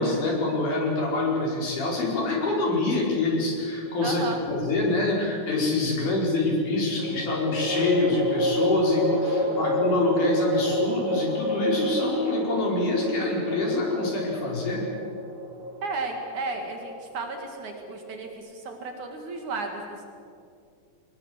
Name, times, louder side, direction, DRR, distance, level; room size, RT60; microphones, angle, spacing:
voice 1, 0.0-14.8, left 2 dB, 75° left, -3 dB, 6.7 m, -25 dB
sound 1, 3.9-4.7 7.0-18.3, right 1 dB, 15° right, 3.3 m, -30 dB
voice 2, 4.0-4.4 9.3-9.8 15.8-20.0, right 3 dB, 70° right, 3 dB, 3.4 m, -34 dB
24.5 x 20.5 x 8.1 m, 2.4 s
omnidirectional pair, 3.6 m